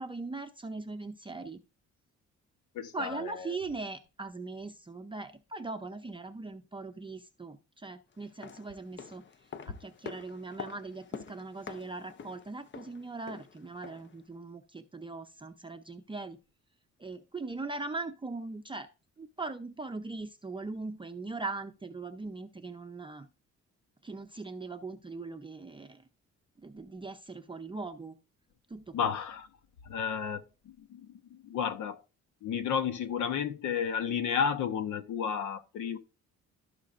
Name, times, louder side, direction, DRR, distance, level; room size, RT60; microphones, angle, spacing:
voice 1, 0.0-1.6 2.9-9.3 9.7-16.4 17.0-18.9 19.2-23.3 24.0-26.1 26.6-28.2 28.7-29.1, right 3 dB, 15° right, 0.6 m, -40 dB
voice 2, 2.7-3.5 28.9-29.5 29.8-32.0 32.4-36.0, left 7 dB, 80° left, 1.0 m, -32 dB
sound 1, 8.2-14.2 14.5-14.6, left 6 dB, 40° left, 0.6 m, -46 dB
15.0 x 5.1 x 2.5 m
cardioid pair, 90°, 30 cm